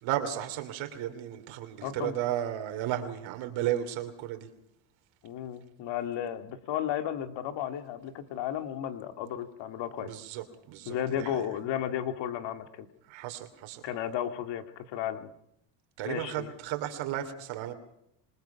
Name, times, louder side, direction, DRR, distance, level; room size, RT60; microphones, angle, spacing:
voice 1, 0.0-4.5 10.0-11.5 13.1-13.8 16.0-17.7, right 12 dB, 75° right, 7 dB, 3.1 m, -34 dB
voice 2, 1.8-2.1 5.2-10.1 10.9-12.9 13.8-15.3 16.0-16.5, left 10 dB, 65° left, 9 dB, 2.2 m, -34 dB
27.0 x 20.5 x 5.8 m, 0.75 s
cardioid pair, 120°, 47 cm